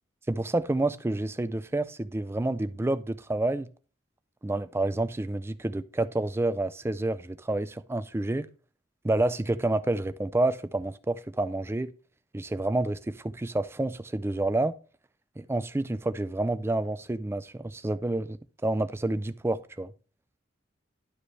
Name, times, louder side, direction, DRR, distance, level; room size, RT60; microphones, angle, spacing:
voice 1, 0.3-3.7 4.4-8.5 9.0-11.9 12.3-14.8 15.4-19.9, right 2 dB, 15° right, 0.3 m, -29 dB
11.5 x 5.1 x 3.2 m
head